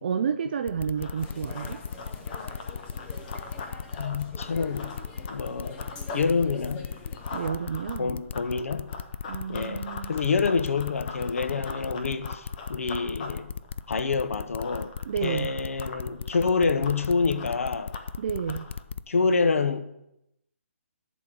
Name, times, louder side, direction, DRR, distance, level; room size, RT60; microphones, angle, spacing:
voice 1, 0.0-1.8 7.3-8.1 9.3-10.2 15.1-15.5 18.2-18.7, right 7 dB, 40° right, 0.4 m, -30 dB
sound 1, 0.7-19.0, left 6 dB, 55° left, 0.4 m, -36 dB
Run, 0.8-6.3 6.6-18.8, left 4 dB, 35° left, 1.2 m, -43 dB
sound 2, 1.2-7.5, left 3 dB, 10° left, 0.8 m, -45 dB
voice 2, 4.0-4.9 5.3-5.8 6.1-6.8 8.0-8.9 9.5-13.5 13.9-14.9 15.2-17.9 19.1-19.8, left 4 dB, 75° left, 1.0 m, -27 dB
11.5 x 4.2 x 7.6 m
hypercardioid pair, 165°, 8 cm